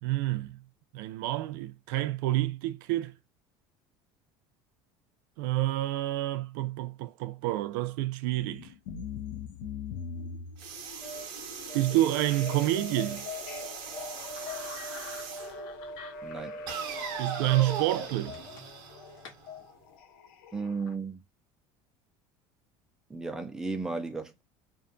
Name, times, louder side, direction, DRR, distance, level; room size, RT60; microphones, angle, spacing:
voice 1, 0.0-0.6 0.9-3.1 5.4-8.7 11.7-13.3 17.2-18.4, right 16 dB, 85° right, 0.4 m, -28 dB
sound 1, 8.3-20.9, left 7 dB, 90° left, 0.6 m, -43 dB
sound 2, 10.6-15.5 16.7-19.6, right 7 dB, 50° right, 0.7 m, -40 dB
sound 3, 10.7-18.9 19.2-19.3, right 1 dB, 40° left, 0.6 m, -43 dB
voice 2, 16.2-16.6 20.5-21.2 23.1-24.4, right 4 dB, 5° right, 0.3 m, -34 dB
2.5 x 2.2 x 2.5 m
cardioid pair, 170°, 11 cm